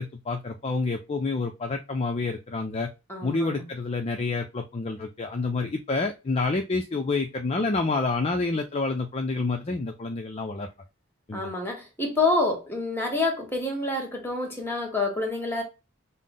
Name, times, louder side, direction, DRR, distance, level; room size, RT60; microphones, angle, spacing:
voice 1, 0.0-2.9 3.2-10.7 11.3-11.5, left 3 dB, 30° left, 0.5 m, -28 dB
voice 2, 3.1-3.7 11.3-15.6, left 2 dB, 10° left, 1.5 m, -27 dB
5.7 x 2.0 x 3.7 m
head